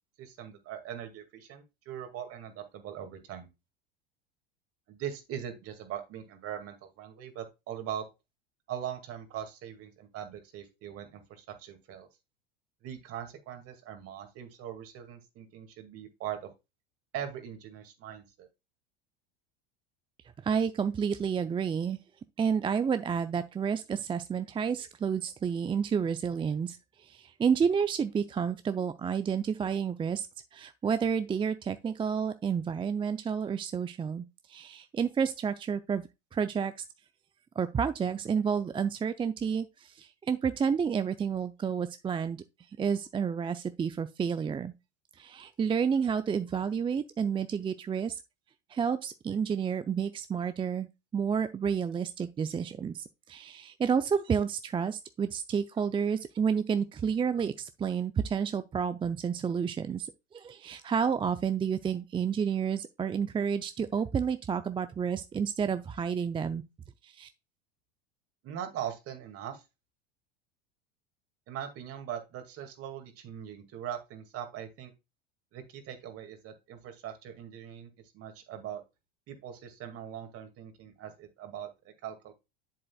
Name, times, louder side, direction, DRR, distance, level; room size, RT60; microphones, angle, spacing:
voice 1, 0.2-3.5 4.9-8.0 8.7-12.1 12.8-16.5 17.1-18.5 68.4-69.6 71.5-74.9 75.5-78.8 79.3-82.3, right 9 dB, 45° right, 2.2 m, -41 dB
voice 2, 20.4-22.0 22.4-30.3 30.5-36.8 37.6-42.4 42.8-44.7 45.2-48.2 48.7-66.6 67.0-67.3, right 6 dB, 15° right, 0.5 m, -30 dB
7.7 x 7.6 x 2.3 m
hypercardioid pair, 90°, 31 cm